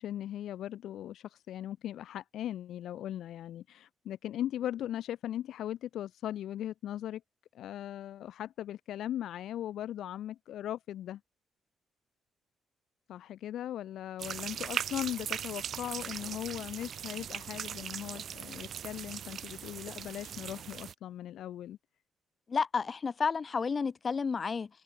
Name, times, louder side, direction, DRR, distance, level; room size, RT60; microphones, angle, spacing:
voice 1, 0.0-7.2 7.5-11.2 13.1-21.8, left 11 dB, 80° left, 1.6 m, -39 dB
sound 1, 14.2-20.9, right 8 dB, 60° right, 4.2 m, -39 dB
voice 2, 22.5-24.7, left 5 dB, 40° left, 3.4 m, -31 dB
cardioid pair, 95°, 0 cm